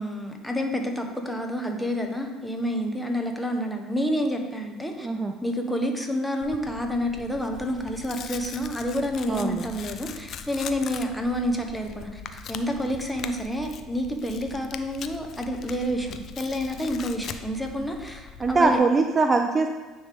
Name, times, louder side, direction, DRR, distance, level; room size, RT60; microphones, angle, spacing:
voice 1, 0.0-5.1 5.4-18.8, equal, 5° left, 3 dB, 0.9 m, -29 dB
voice 2, 5.0-5.3 9.3-9.7 18.4-19.7, right 3 dB, 30° right, 5 dB, 0.4 m, -22 dB
Tearing, 6.4-18.8, left 7 dB, 50° left, 0.4 m, -41 dB
9.3 x 3.1 x 3.5 m, 1.3 s
supercardioid pair, 85°, 0 cm